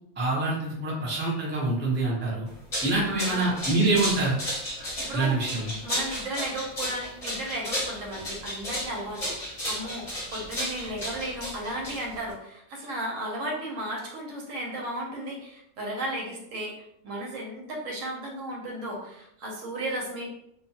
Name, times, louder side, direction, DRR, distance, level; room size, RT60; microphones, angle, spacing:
voice 1, 0.2-2.5 2.8-4.4 5.1-5.7, right 2 dB, 15° right, -5 dB, 0.4 m, -26 dB
sound 1, 2.5-12.3, equal, 30° left, 0.7 m, -33 dB
voice 2, 3.0-3.5 5.0-5.4 5.8-16.7 17.0-20.3, right 1 dB, 70° right, -1 dB, 1.0 m, -34 dB
2.4 x 2.3 x 2.7 m, 0.76 s
omnidirectional pair, 1.5 m